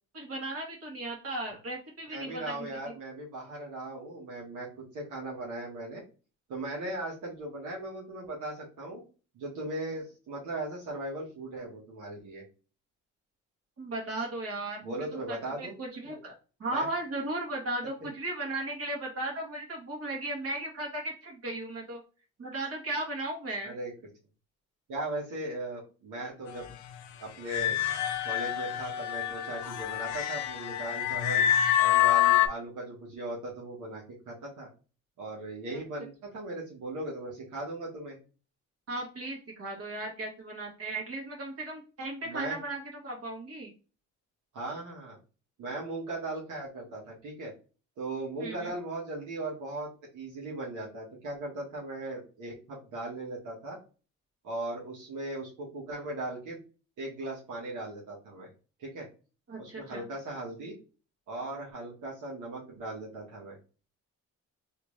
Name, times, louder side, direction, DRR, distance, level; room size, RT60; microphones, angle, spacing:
voice 1, 0.1-2.8 13.8-14.9 15.3-16.3 16.6-22.0 22.4-23.7 38.9-43.7 48.4-48.7 59.5-60.1, right 2 dB, 50° right, 0 dB, 1.9 m, -36 dB
voice 2, 2.1-6.0 6.5-9.0 9.3-12.4 14.8-15.7 16.7-16.9 23.6-23.9 24.9-26.7 27.2-27.8 28.2-31.4 31.8-34.7 35.2-38.2 42.2-42.6 44.5-45.2 45.6-47.5 48.0-53.8 54.4-56.6 57.0-58.5 58.8-59.1 59.6-60.7 61.3-63.6, right 2 dB, 80° right, -3 dB, 1.4 m, -38 dB
sound 1, 27.5-32.5, left 11 dB, 75° left, 0.6 m, -26 dB
3.4 x 2.8 x 3.2 m, 0.35 s
cardioid pair, 90°, 30 cm